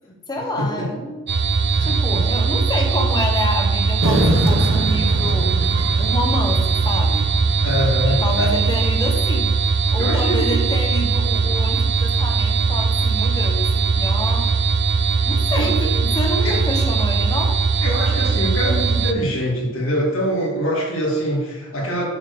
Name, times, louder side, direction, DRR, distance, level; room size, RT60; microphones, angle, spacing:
voice 1, 0.1-1.3 1.8-5.5 6.0-7.3 8.1-9.5 9.9-14.5 15.3-17.6, left 1 dB, 20° left, 2 dB, 1.2 m, -28 dB
voice 2, 0.6-0.9 1.7-2.2 7.6-8.5 10.0-10.5 15.6-15.9 16.4-16.6 17.8-22.0, equal, 75° left, -3 dB, 2.5 m, -24 dB
sound 1, 1.3-19.1, right 4 dB, 55° right, 0.6 m, -20 dB
sound 2, 4.0-8.6, right 1 dB, 70° right, 1.3 m, -24 dB
7.2 x 4.6 x 6.8 m, 1.2 s
head